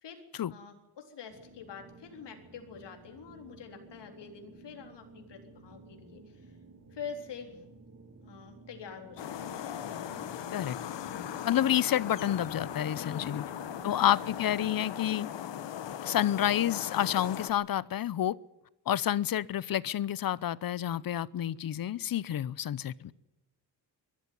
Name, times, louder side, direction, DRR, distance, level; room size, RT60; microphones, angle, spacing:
voice 1, 0.5-6.5 6.9-7.6 8.2-9.7 10.3-10.6 12.9-14.0, left 6 dB, 75° left, 4 dB, 4.0 m, -46 dB
sound 1, 1.3-14.9, right 3 dB, 40° right, 2.8 m, -53 dB
sound 2, 9.2-17.5, left 10 dB, 90° left, 1.7 m, -39 dB
voice 2, 11.4-13.4 13.8-15.3 16.0-18.4 18.9-23.1, left 11 dB, 55° left, 21 dB, 0.7 m, -29 dB
23.0 x 14.0 x 9.4 m, 0.96 s
cardioid pair, 125°, 42 cm